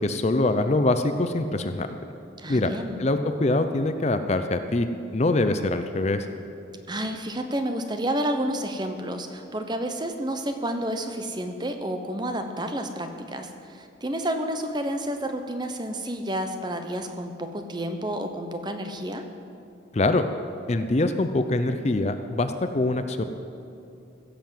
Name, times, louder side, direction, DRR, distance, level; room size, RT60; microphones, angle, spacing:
voice 1, 0.0-1.9 2.5-2.7 3.0-4.9 5.1-6.3 19.9-20.2 20.7-23.2, left 2 dB, 35° left, 8 dB, 0.5 m, -24 dB
voice 2, 2.4-3.0 6.9-19.2, right 1 dB, 20° right, 6 dB, 0.8 m, -30 dB
16.5 x 6.9 x 7.6 m, 2.8 s
head